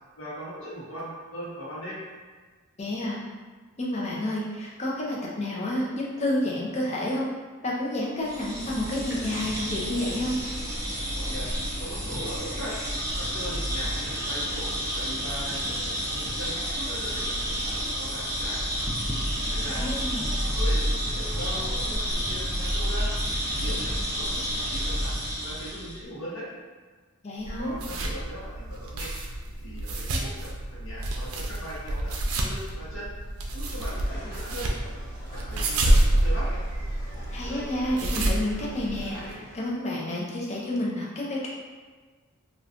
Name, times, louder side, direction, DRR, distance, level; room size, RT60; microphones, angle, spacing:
voice 1, 0.2-2.0 11.1-11.5 11.8-12.8 13.1-18.6 19.5-19.8 20.4-23.1 23.5-25.1 25.4-26.5 27.6-29.1 29.6-33.1 33.5-34.7 35.3-36.0 36.2-36.5, equal, 65° left, -7 dB, 1.0 m, -39 dB
voice 2, 2.8-3.2 3.8-7.3 7.6-10.4 19.8-20.3 27.2-27.8 37.3-41.5, left 1 dB, 30° left, -3 dB, 0.5 m, -30 dB
sound 1, 8.2-26.0, equal, 15° right, 0.5 m, -29 dB
sound 2, 27.4-39.3, right 1 dB, 85° right, 0.5 m, -28 dB
sound 3, 33.7-39.7, equal, 15° left, 1.0 m, -45 dB
2.4 x 2.4 x 3.5 m, 1.4 s
head